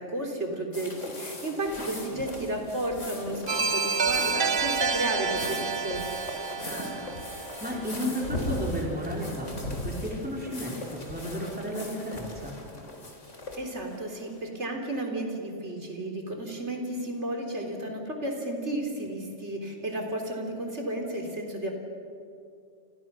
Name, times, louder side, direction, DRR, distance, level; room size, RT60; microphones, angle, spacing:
voice 1, 0.0-6.1 13.6-21.7, right 1 dB, 70° right, 2 dB, 3.9 m, -33 dB
sound 1, 0.7-14.4, left 1 dB, 85° left, 3.9 m, -38 dB
sound 2, 3.5-8.2, right 5 dB, 50° right, 1.2 m, -29 dB
voice 2, 6.6-12.6, equal, 5° right, -3 dB, 4.0 m, -34 dB
30.0 x 27.0 x 6.3 m, 2.5 s
omnidirectional pair, 1.2 m